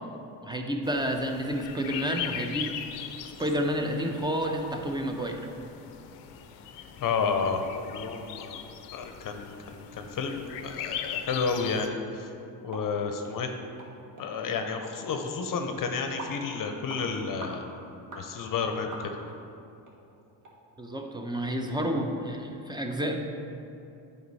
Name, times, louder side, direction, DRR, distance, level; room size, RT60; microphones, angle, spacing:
voice 1, 0.4-2.8 3.2-5.5 20.8-23.2, equal, 10° right, 3 dB, 0.7 m, -30 dB
sound 1, 0.8-11.9, left 9 dB, 80° left, 0.6 m, -40 dB
voice 2, 7.0-7.6 7.9-8.6 8.9-12.3 12.6-13.5 14.2-17.6 18.1-19.1, left 5 dB, 50° left, 5 dB, 0.7 m, -31 dB
sound 2, 12.7-12.9 13.2-13.4 13.8-13.9 14.2-14.3 14.8-15.0 15.5-15.6 16.2-16.4 16.9-17.0 17.4-17.6 18.1-18.3 18.9-19.4 19.8-19.9 20.4-20.5 21.0-21.1, right 2 dB, 45° right, 1.6 m, -42 dB
7.9 x 5.3 x 4.1 m, 2.7 s
supercardioid pair, 80°, 42 cm